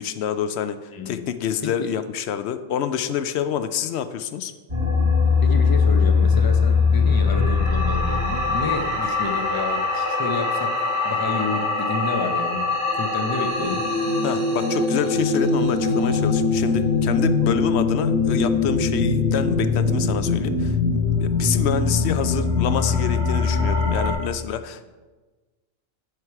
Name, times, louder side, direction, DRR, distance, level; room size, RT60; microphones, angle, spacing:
voice 1, 0.0-4.5 14.2-24.9, left 8 dB, 65° left, 11 dB, 0.7 m, -27 dB
voice 2, 0.9-1.2 1.6-1.9 5.4-13.9, left 3 dB, 35° left, 6 dB, 0.3 m, -30 dB
sound 1, 4.7-24.1, left 4 dB, 55° right, 2.3 m, -21 dB
11.0 x 4.8 x 4.7 m, 1.3 s
omnidirectional pair, 1.4 m